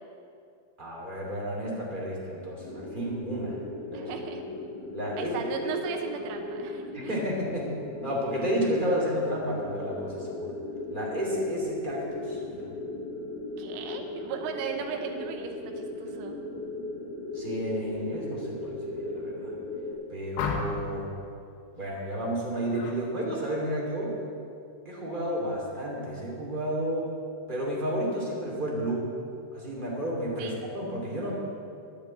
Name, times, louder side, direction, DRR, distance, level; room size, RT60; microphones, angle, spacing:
voice 1, 0.8-3.6 3.8-4.1 4.9-5.3 6.9-7.7 8.0-10.5 10.9-12.7 17.3-19.5 20.1-21.1 21.7-24.1 24.8-27.1 27.5-29.1 29.5-31.4, equal, 25° right, -4 dB, 1.0 m, -31 dB
sound 1, 2.6-19.9, left 2 dB, 35° left, 1.9 m, -37 dB
voice 2, 3.9-4.4 5.2-7.2 13.6-16.4 30.4-30.6, right 7 dB, 85° right, 5 dB, 3.4 m, -37 dB
sound 2, 20.4-21.0 22.7-23.0 23.4-23.8, left 5 dB, 80° left, 3.9 m, -33 dB
10.5 x 10.0 x 8.8 m, 2.4 s
omnidirectional pair, 5.7 m